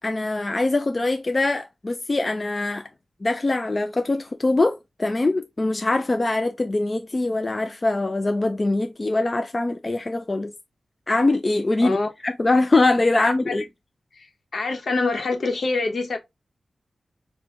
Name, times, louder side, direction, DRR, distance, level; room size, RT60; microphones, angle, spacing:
voice 1, 0.0-2.9 3.2-10.5 11.1-12.0 12.2-13.6, left 2 dB, 30° left, 0.3 m, -23 dB
voice 2, 13.2-13.5 14.5-16.2, left 3 dB, 65° left, 0.9 m, -25 dB
6.0 x 2.2 x 2.5 m
wide cardioid pair, 125°, 0 cm